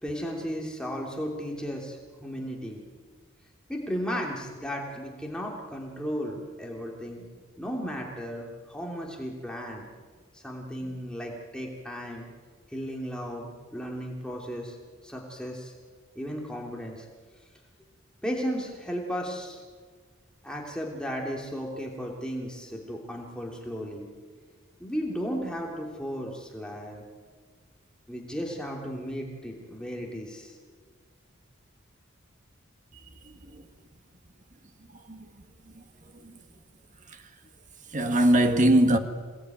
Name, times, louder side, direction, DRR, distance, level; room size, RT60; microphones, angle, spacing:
voice 1, 0.0-2.8 3.7-7.3 7.5-9.9 10.3-12.3 12.7-14.8 15.0-15.7 16.1-17.1 18.2-19.6 20.4-24.1 24.8-27.0 28.1-30.6, equal, 5° left, 2.9 m, -35 dB
voice 2, 33.2-33.6 34.9-35.3 35.7-35.8 36.1-36.4 37.1-37.2 37.9-39.0, right 1 dB, 40° right, 1.7 m, -23 dB
27.5 x 18.5 x 9.3 m
head